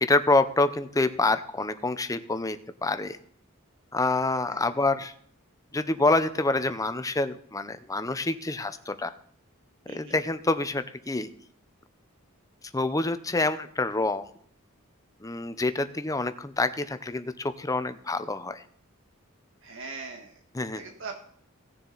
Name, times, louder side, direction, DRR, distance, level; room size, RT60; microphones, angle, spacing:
voice 1, 0.0-3.2 3.9-5.1 5.7-9.1 9.9-11.3 12.7-14.2 15.2-18.6 20.5-20.8, left 2 dB, 15° left, 11 dB, 0.7 m, -27 dB
voice 2, 19.6-20.4 20.7-21.2, right 4 dB, 65° right, 3 dB, 1.5 m, -40 dB
17.5 x 7.2 x 4.0 m, 0.62 s
head